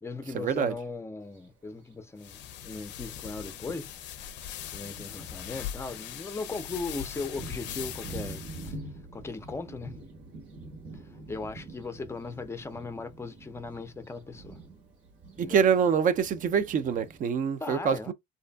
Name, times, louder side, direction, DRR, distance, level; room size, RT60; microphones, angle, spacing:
voice 1, 0.0-4.0 4.7-8.8 9.1-10.0 10.9-11.0 11.3-14.6 15.4-15.6 17.6-18.1, left 3 dB, 15° left, 0.4 m, -38 dB
Thunder, 1.2-1.4 2.3-2.4 3.0-3.1 3.5-17.2, right 2 dB, 75° right, 1.3 m, -46 dB
sound 1, 2.2-8.7, left 11 dB, 75° left, 0.4 m, -40 dB
voice 2, 15.4-18.1, right 7 dB, 45° right, 0.5 m, -25 dB
2.6 x 2.4 x 2.2 m
cardioid pair, 105°, 18 cm